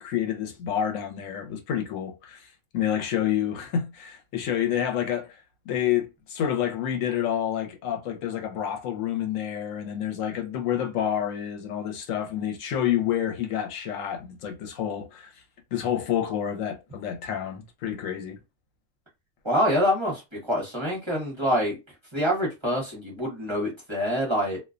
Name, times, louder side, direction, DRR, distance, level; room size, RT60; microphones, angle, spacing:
voice 1, 0.0-2.5 2.7-15.3 15.7-18.4, left 10 dB, 80° left, 1.1 m, -28 dB
voice 2, 19.4-20.2 20.5-21.7 22.1-24.6, equal, 25° right, 0.9 m, -25 dB
2.4 x 2.2 x 2.4 m
omnidirectional pair, 1.3 m